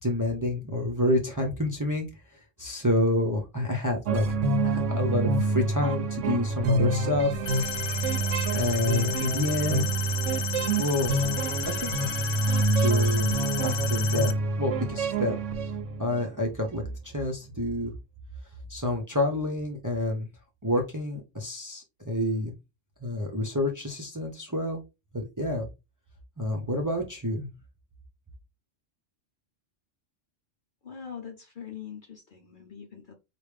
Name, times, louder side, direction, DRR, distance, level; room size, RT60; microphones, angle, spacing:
voice 1, 0.0-2.1 2.6-4.4 4.6-7.4 8.5-9.9 10.8-11.2 11.8-11.9 12.7-13.3 13.6-14.3 14.6-15.4 16.0-17.9 18.7-20.3 20.6-22.5 23.0-24.8 25.1-25.7 26.4-27.5, left 1 dB, 20° right, 0.6 m, -28 dB
sound 1, 4.1-16.3, right 2 dB, 75° right, 0.9 m, -27 dB
sound 2, 7.5-14.3, left 10 dB, 75° left, 0.9 m, -34 dB
voice 2, 30.8-33.1, left 7 dB, 50° left, 0.7 m, -42 dB
4.9 x 2.5 x 3.3 m
omnidirectional pair, 1.3 m